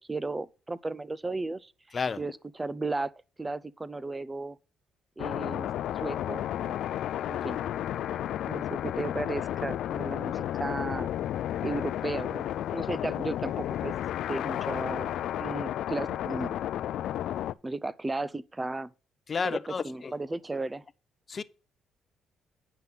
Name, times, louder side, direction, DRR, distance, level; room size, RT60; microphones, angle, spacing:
voice 1, 0.0-1.7 2.2-3.1 3.4-4.6 5.2-5.7 6.0-6.7 7.3-7.6 8.1-8.2 8.5-11.1 11.6-13.9 14.3-15.1 15.4-16.5 17.6-18.9 19.4-19.6 19.8-20.8, right 2 dB, 20° right, 0.5 m, -34 dB
voice 2, 1.9-2.2 19.3-20.1 21.3-21.4, left 5 dB, 40° left, 0.7 m, -31 dB
sound 1, 5.2-17.5, left 11 dB, 75° left, 0.4 m, -32 dB
9.5 x 5.8 x 5.5 m
cardioid pair, 90°, 0 cm